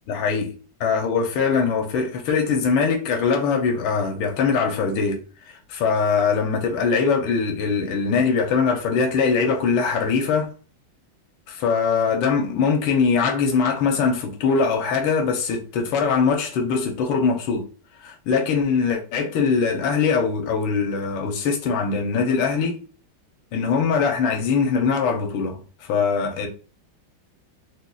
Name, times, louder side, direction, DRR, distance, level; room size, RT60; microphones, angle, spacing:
voice 1, 0.1-0.5 0.8-5.2 5.5-10.5 11.5-17.6 18.0-22.8 23.5-26.5, left 5 dB, 85° left, 1.5 m, -22 dB
5.1 x 2.1 x 2.3 m
omnidirectional pair, 2.1 m